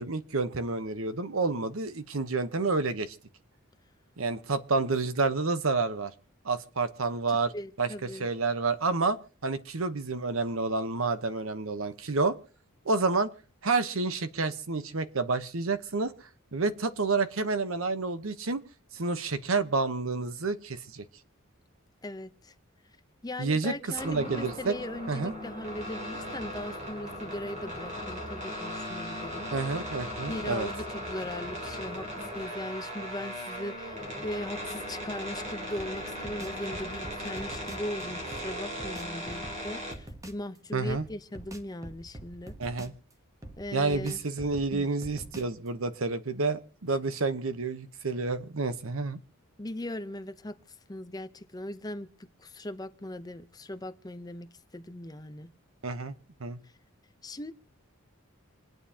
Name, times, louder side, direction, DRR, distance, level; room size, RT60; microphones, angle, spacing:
voice 1, 0.0-3.2 4.2-6.1 6.4-7.5 7.8-7.9 8.2-9.2 9.4-12.4 12.8-13.3 13.6-16.1 16.5-18.6 18.9-21.0 23.4-24.8 25.1-25.3 29.5-30.7 40.7-41.0 42.6-42.9 43.7-49.2 55.8-56.1 56.4-56.6, right 3 dB, 75° right, 1.0 m, -29 dB
voice 2, 7.3-8.3 22.0-22.5 23.2-29.5 30.3-42.5 43.6-44.2 44.7-44.9 49.6-50.6 50.9-55.5 57.2-57.5, left 1 dB, 20° left, 0.7 m, -39 dB
sound 1, 23.9-39.9, equal, 35° right, 3.2 m, -38 dB
sound 2, 35.8-37.9 38.3-40.5 40.9-43.1 43.4-45.7, right 1 dB, 15° right, 1.0 m, -45 dB
27.5 x 9.2 x 2.8 m
head